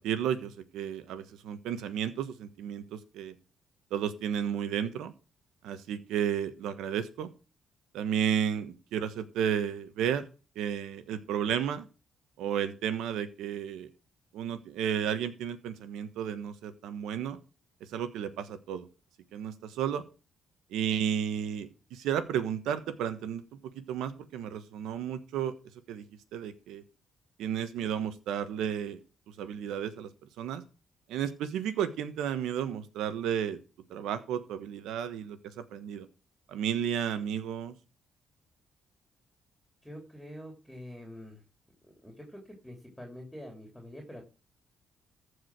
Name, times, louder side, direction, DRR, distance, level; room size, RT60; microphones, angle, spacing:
voice 1, 0.0-3.4 3.9-5.1 5.6-7.3 7.9-10.3 10.5-11.9 12.4-13.9 14.3-17.4 17.9-18.9 19.3-20.0 20.7-23.4 23.7-25.5 25.9-26.0 26.3-26.8 27.4-29.0 29.4-30.1 30.4-30.6 31.1-33.6 33.9-36.1 36.5-37.7, right 9 dB, 90° right, 11 dB, 1.3 m, -32 dB
voice 2, 39.8-41.4 41.8-44.2, equal, 5° left, 2 dB, 3.2 m, -46 dB
14.5 x 5.0 x 6.2 m, 0.34 s
cardioid pair, 90°, 0 cm